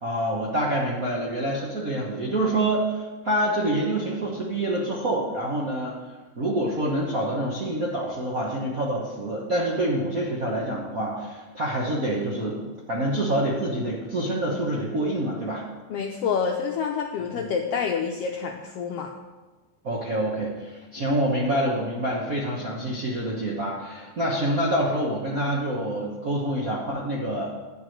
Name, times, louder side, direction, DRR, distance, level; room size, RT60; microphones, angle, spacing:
voice 1, 0.0-6.0 6.4-15.6 17.3-17.5 19.8-27.5, right 1 dB, 50° right, -4 dB, 1.0 m, -26 dB
voice 2, 15.9-19.1, left 6 dB, 80° left, 2 dB, 1.4 m, -27 dB
10.0 x 4.7 x 7.8 m, 1.2 s
omnidirectional pair, 3.4 m